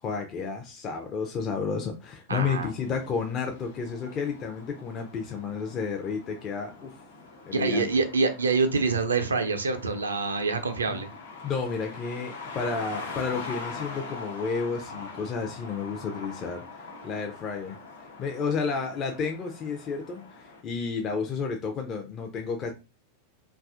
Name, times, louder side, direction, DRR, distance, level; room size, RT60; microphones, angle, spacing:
voice 1, 0.0-7.0 7.5-7.9 10.9-11.0 11.4-22.7, left 5 dB, 35° left, 3 dB, 0.4 m, -31 dB
voice 2, 2.3-2.7 7.5-11.1, right 4 dB, 80° right, 7 dB, 0.4 m, -26 dB
sound 1, 2.5-20.6, left 4 dB, 75° left, 0.6 m, -43 dB
2.6 x 2.3 x 2.4 m, 0.29 s
figure-of-eight pair, 90°, 0 cm